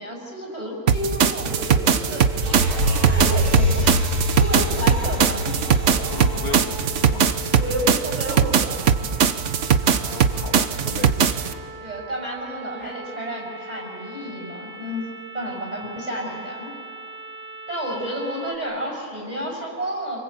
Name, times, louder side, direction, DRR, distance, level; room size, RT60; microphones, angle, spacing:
voice 1, 0.0-2.4 3.1-5.6 7.5-8.8 11.8-15.1 15.3-16.7 17.7-20.2, equal, 25° right, -1 dB, 6.7 m, -31 dB
sound 1, 0.9-11.5, right 7 dB, 55° right, 1.1 m, -20 dB
sound 2, 1.4-18.6, equal, 5° right, 1.4 m, -39 dB
sound 3, 2.4-8.0 8.4-8.5, equal, 80° right, 3.8 m, -25 dB
voice 2, 4.5-4.9 6.0-7.4 9.8-11.4, left 5 dB, 75° left, 4 dB, 1.9 m, -37 dB
26.0 x 24.5 x 8.4 m, 2.3 s
omnidirectional pair, 1.6 m